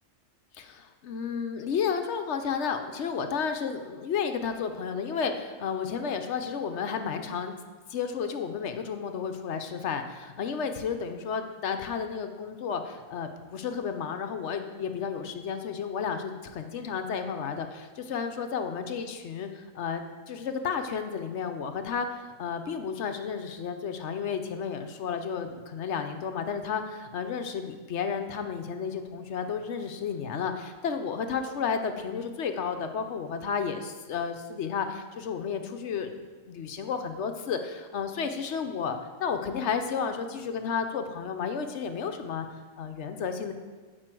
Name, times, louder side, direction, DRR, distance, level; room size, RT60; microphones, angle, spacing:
voice 1, 0.5-7.6 7.9-36.1 36.5-42.5 42.8-43.5, left 6 dB, 60° left, 7 dB, 0.9 m, -32 dB
9.1 x 4.5 x 7.5 m, 1.4 s
omnidirectional pair, 1.4 m